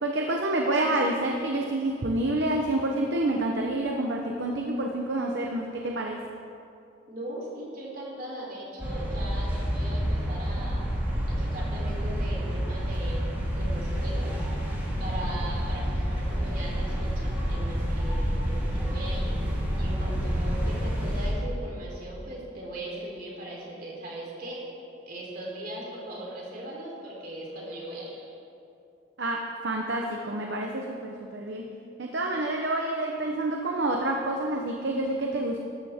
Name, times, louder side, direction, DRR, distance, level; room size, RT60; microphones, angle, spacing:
voice 1, 0.0-6.2 29.2-31.7 32.0-35.6, right 1 dB, 65° right, 1 dB, 0.9 m, -28 dB
voice 2, 7.1-10.9 11.3-14.3 15.0-19.4 19.8-24.6 25.1-28.3, right 1 dB, 50° right, -4 dB, 3.5 m, -39 dB
sound 1, 8.8-21.3, equal, 10° right, 3.4 m, -28 dB
13.5 x 13.0 x 3.6 m, 2.6 s
head